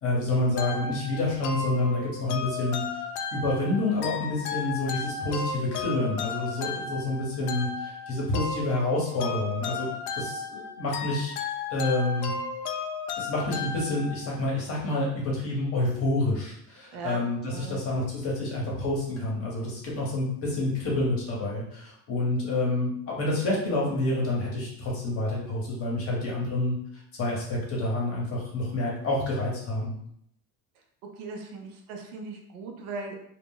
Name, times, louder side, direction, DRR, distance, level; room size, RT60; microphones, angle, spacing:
voice 1, 0.0-3.0 3.3-9.9 10.1-11.3 11.7-12.3 13.2-26.7 27.2-29.9, left 2 dB, 30° left, -4 dB, 0.9 m, -28 dB
sound 1, 0.6-14.4, left 5 dB, 80° left, 0.6 m, -34 dB
voice 2, 17.5-17.8 31.2-33.2, right 4 dB, 75° right, 2 dB, 0.7 m, -38 dB
2.3 x 2.1 x 3.6 m, 0.72 s
cardioid pair, 150°, 44 cm